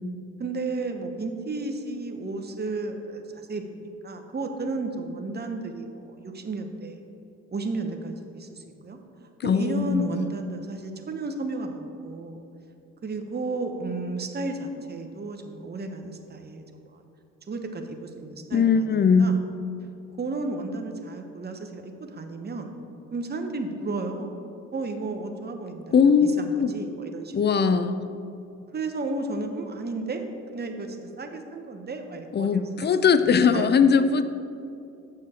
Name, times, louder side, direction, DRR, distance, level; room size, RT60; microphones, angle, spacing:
voice 1, 0.4-7.0 7.5-9.0 9.4-12.4 13.0-17.0 17.5-19.4 20.2-22.7 23.1-24.3 24.7-27.8 28.7-30.3 30.5-32.7 33.3-33.7, right 3 dB, 30° right, 5 dB, 1.0 m, -33 dB
voice 2, 9.4-10.2 18.5-19.3 25.9-26.7 27.3-28.0 32.3-34.2, left 6 dB, 30° left, 12 dB, 0.5 m, -20 dB
7.7 x 6.4 x 4.3 m, 2.6 s
supercardioid pair, 55°, 33 cm